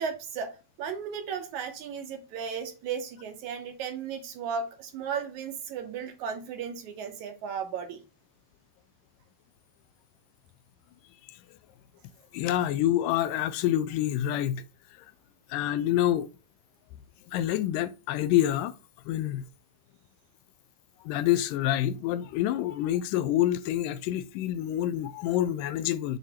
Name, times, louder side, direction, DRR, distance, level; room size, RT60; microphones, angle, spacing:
voice 1, 0.0-8.0, right 6 dB, 70° right, 2.0 m, -35 dB
voice 2, 12.3-14.6 15.5-16.3 17.3-18.7 19.1-19.5 21.0-26.2, left 12 dB, 80° left, 2.0 m, -27 dB
8.0 x 3.2 x 4.2 m
omnidirectional pair, 4.2 m